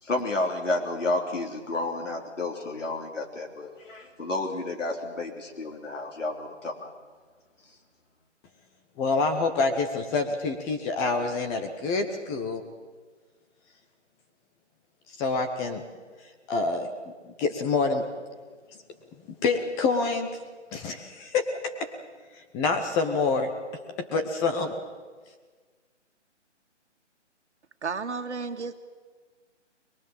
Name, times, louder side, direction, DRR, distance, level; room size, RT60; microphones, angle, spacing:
voice 1, 0.0-6.9, left 2 dB, 85° left, 1 dB, 3.5 m, -31 dB
voice 2, 9.0-12.6 15.2-15.8 16.5-16.9 17.2-18.0 19.4-20.3 20.7-21.5 22.5-23.5 24.0-24.7, left 4 dB, 10° left, 6 dB, 0.8 m, -26 dB
voice 3, 27.8-28.7, right 4 dB, 70° right, 7 dB, 2.1 m, -32 dB
22.5 x 22.5 x 7.5 m, 1.5 s
figure-of-eight pair, 155°, 36 cm